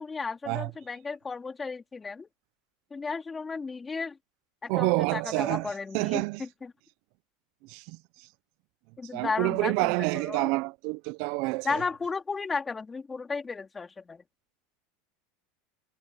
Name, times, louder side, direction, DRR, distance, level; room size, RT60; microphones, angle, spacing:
voice 1, 0.0-2.3 2.9-4.2 4.6-6.7 9.0-10.5 11.6-14.2, left 4 dB, 15° left, 3.3 m, -34 dB
voice 2, 4.7-6.4 7.6-8.3 9.1-11.8, right 25 dB, 60° right, 0.6 m, -28 dB
supercardioid pair, 120°, 0 cm